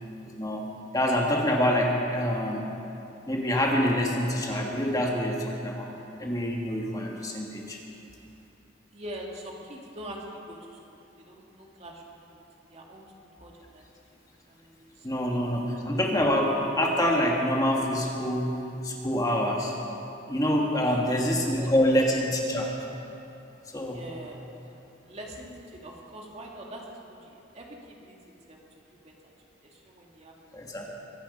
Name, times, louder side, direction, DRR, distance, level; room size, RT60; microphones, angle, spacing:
voice 1, 0.9-2.6 3.3-5.9 6.2-7.8 15.0-18.5 18.8-19.7 20.3-22.7 23.7-24.0 30.5-30.9, equal, 20° left, -1 dB, 1.4 m, -26 dB
voice 2, 8.9-13.1 13.4-13.8 14.5-15.1 15.5-15.6 20.8-21.7 23.8-24.4 25.1-28.2 28.5-28.6 28.9-29.3 29.6-30.5 30.8-30.9, right 1 dB, 35° right, -1 dB, 2.0 m, -44 dB
23.0 x 10.5 x 5.4 m, 2.8 s
head